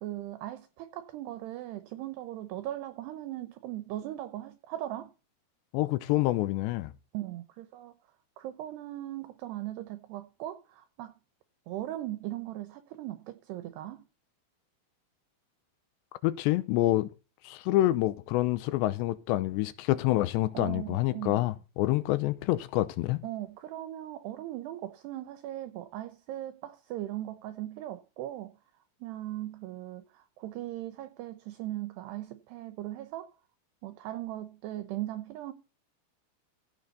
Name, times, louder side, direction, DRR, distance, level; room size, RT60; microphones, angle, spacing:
voice 1, 0.0-5.1 7.1-7.9 8.4-11.1 11.7-14.0 20.5-21.4 23.2-28.6 29.0-33.3 33.8-35.5, right 14 dB, 75° right, 2.7 m, -39 dB
voice 2, 5.7-6.9 16.2-17.1 17.4-23.2, left 16 dB, 80° left, 2.8 m, -27 dB
16.0 x 6.7 x 4.1 m
omnidirectional pair, 5.4 m